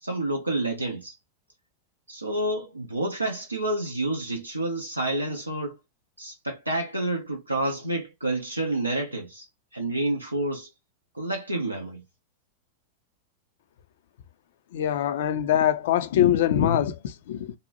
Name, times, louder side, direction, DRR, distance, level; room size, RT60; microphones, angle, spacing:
voice 1, 0.0-1.1 2.1-5.8 6.2-9.5 9.7-10.7 11.1-12.0, right 1 dB, 85° right, 0.4 m, -29 dB
voice 2, 14.7-17.5, left 10 dB, 55° left, 0.3 m, -23 dB
2.7 x 2.1 x 2.7 m
figure-of-eight pair, 90°, 0 cm